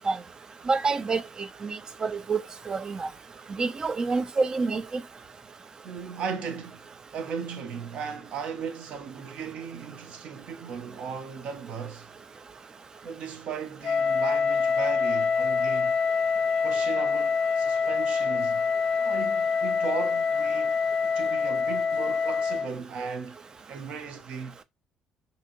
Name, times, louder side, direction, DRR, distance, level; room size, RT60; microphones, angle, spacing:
voice 1, 0.7-1.2 1.6-3.1 3.6-4.8, right 4 dB, 35° right, 0.3 m, -27 dB
voice 2, 5.8-6.9 7.1-12.1 13.0-16.0 16.6-18.7 19.0-20.9 21.1-23.4 23.7-24.6, right 6 dB, 65° right, 0.7 m, -37 dB
Wind instrument woodwind instrument, 13.8-22.7, left 5 dB, 50° left, 0.4 m, -25 dB
2.8 x 2.7 x 2.5 m
supercardioid pair, 80°, 2 cm